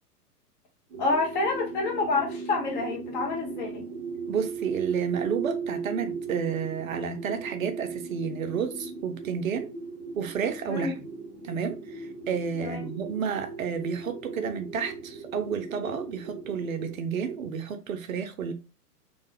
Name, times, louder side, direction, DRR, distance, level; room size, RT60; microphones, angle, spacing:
sound 1, 0.9-17.0, right 4 dB, 15° right, 0.5 m, -37 dB
voice 1, 1.0-3.9 10.7-10.9 12.6-12.9, left 3 dB, 30° left, 0.7 m, -28 dB
voice 2, 4.3-9.7 10.2-10.9 11.4-18.5, right 6 dB, 60° right, 0.5 m, -31 dB
2.4 x 2.3 x 2.8 m
figure-of-eight pair, 110°, 47 cm